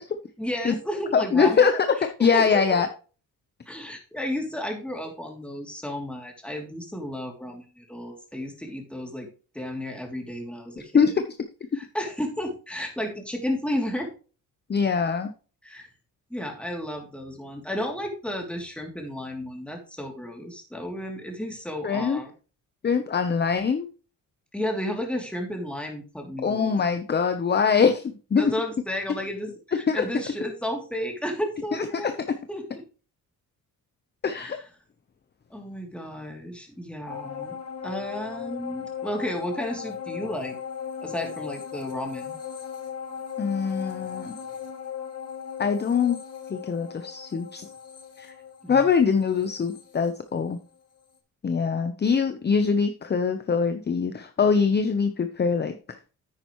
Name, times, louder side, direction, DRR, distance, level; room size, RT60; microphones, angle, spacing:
voice 1, 0.4-1.7 2.2-2.8 3.7-9.3 9.5-11.2 11.7-14.1 15.6-15.9 16.3-22.3 24.5-26.8 28.4-32.2 32.5-32.8 34.3-34.6 35.5-37.5 37.8-40.6 41.0-42.3 48.6-48.8, left 1 dB, 5° left, 1 dB, 2.9 m, -32 dB
voice 2, 1.1-2.9 10.9-11.1 14.7-15.3 21.8-22.2 22.8-23.9 26.4-28.5 29.9-30.1 31.7-32.4 34.2-34.6 43.4-44.4 45.6-46.2 46.5-47.7 48.2-48.3 48.7-50.6 51.4-56.0, left 6 dB, 30° left, 8 dB, 0.8 m, -23 dB
sound 1, 37.1-50.7 51.1-51.2, left 7 dB, 45° left, 2.6 m, -38 dB
10.0 x 9.0 x 3.1 m, 0.37 s
cardioid pair, 105°, 34 cm